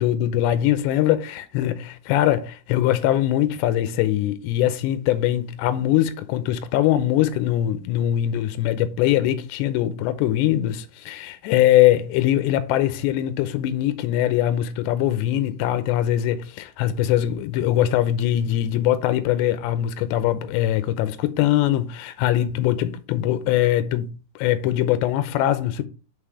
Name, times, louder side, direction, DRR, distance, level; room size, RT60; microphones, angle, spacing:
voice 1, 0.0-24.1 24.4-25.8, left 12 dB, 80° left, 2.8 m, -22 dB
6.6 x 5.6 x 4.8 m
omnidirectional pair, 5.3 m